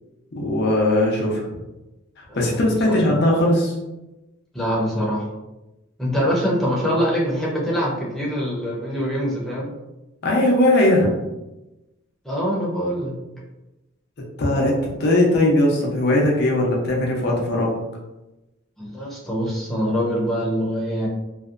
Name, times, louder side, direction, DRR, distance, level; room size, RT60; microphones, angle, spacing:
voice 1, 0.3-1.4 2.3-3.7 10.2-11.1 14.4-14.7 15.0-17.8, left 1 dB, 55° left, -1 dB, 0.6 m, -19 dB
voice 2, 4.5-5.3 6.0-9.7 12.2-13.2 18.8-21.1, equal, ahead, -6 dB, 0.6 m, -24 dB
2.7 x 2.1 x 2.4 m, 0.99 s
head